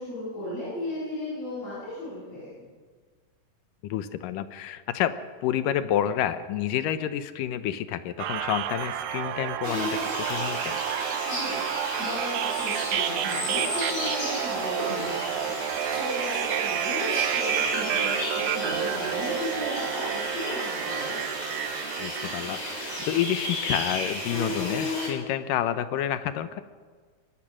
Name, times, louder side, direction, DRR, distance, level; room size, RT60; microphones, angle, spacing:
voice 1, 0.0-2.5 11.3-11.6 12.0-21.2, left 1 dB, 45° left, -9 dB, 8.7 m, -35 dB
voice 2, 3.8-5.1 5.4-10.8 22.0-26.6, left 11 dB, 75° left, 12 dB, 2.2 m, -29 dB
night in gale, 8.2-23.2, right 10 dB, 75° right, 1.9 m, -30 dB
sound 1, 9.6-25.1, left 1 dB, 25° left, 6.5 m, -33 dB
22.5 x 19.0 x 6.3 m, 1.5 s
omnidirectional pair, 4.3 m